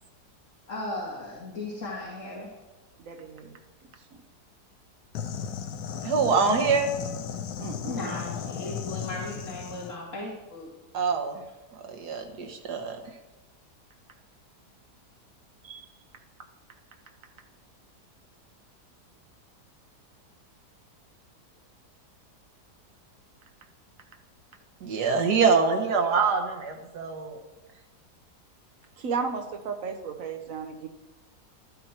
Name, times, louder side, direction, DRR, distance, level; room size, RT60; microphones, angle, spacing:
voice 1, 0.7-2.5 7.9-10.7, left 2 dB, 50° left, -8 dB, 2.7 m, -36 dB
voice 2, 3.0-3.6 7.6-8.1 15.6-15.8 29.0-30.9, right 5 dB, 60° right, 6 dB, 1.4 m, -34 dB
sound 1, 5.1-10.0, left 7 dB, 75° left, 1.3 m, -35 dB
voice 3, 6.0-6.9 10.9-11.4 11.9-13.0 24.8-27.4, right 5 dB, 80° right, 3 dB, 1.9 m, -24 dB
12.5 x 8.5 x 4.5 m, 1.1 s
omnidirectional pair, 1.7 m